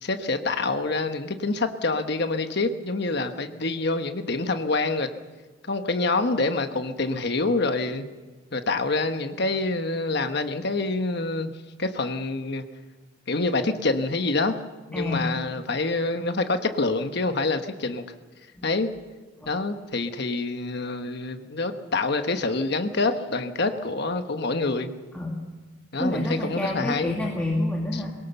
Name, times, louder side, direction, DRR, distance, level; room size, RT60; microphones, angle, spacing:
voice 1, 0.0-5.1 5.6-8.1 8.5-11.5 11.8-12.6 13.3-14.5 14.9-18.0 18.6-18.9 19.5-24.9 25.9-27.2, left 3 dB, 55° left, 7 dB, 1.2 m, -26 dB
voice 2, 14.9-15.3 18.5-18.7 19.4-19.5 25.1-25.4 26.0-28.1, left 1 dB, 5° left, -2 dB, 2.2 m, -28 dB
22.0 x 18.5 x 7.0 m, 1.3 s
head